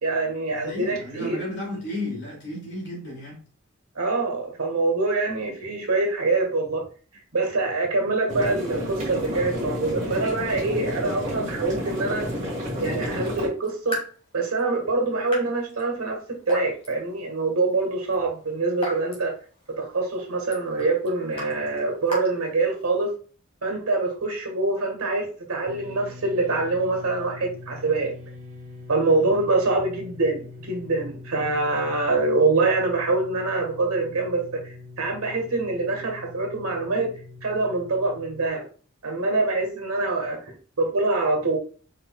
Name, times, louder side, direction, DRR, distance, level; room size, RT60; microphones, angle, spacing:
voice 1, 0.0-1.4 3.9-6.8 7.3-12.3 12.8-14.0 14.3-19.3 19.8-23.1 23.6-28.1 28.9-37.1 37.4-38.6 39.0-41.6, right 3 dB, 90° right, 1.5 m, -25 dB
voice 2, 0.5-3.5 29.0-29.3, left 1 dB, 55° left, 2.3 m, -34 dB
sound 1, 8.3-13.5, equal, 35° right, 1.7 m, -30 dB
Raindrop / Drip, 13.2-23.1, left 1 dB, 25° left, 1.9 m, -40 dB
sound 2, 25.7-38.5, left 3 dB, 65° right, 1.6 m, -43 dB
4.8 x 4.7 x 2.3 m
head